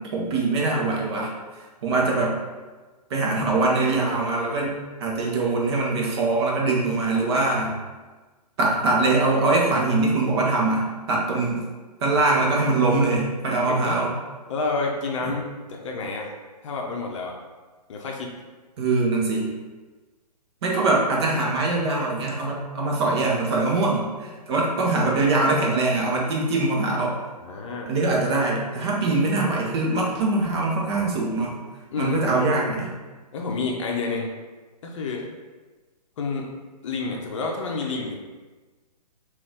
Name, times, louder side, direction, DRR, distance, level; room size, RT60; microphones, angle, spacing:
voice 1, 0.0-1.3 1.8-2.4 3.1-7.8 8.6-11.7 12.0-14.1 15.2-15.3 18.8-19.5 20.6-27.2 27.9-31.6 32.0-32.9, right 3 dB, 40° right, -2 dB, 0.8 m, -23 dB
voice 2, 1.9-2.3 11.3-11.4 12.4-12.5 13.7-14.0 14.5-15.4 15.7-16.3 16.6-17.4 17.9-18.3 27.4-27.9 31.9-32.2 33.3-34.3 34.8-35.3 36.2-36.5 36.8-38.2, left 4 dB, 45° left, 0 dB, 0.6 m, -29 dB
3.9 x 2.5 x 3.6 m, 1.3 s
figure-of-eight pair, 130°, 21 cm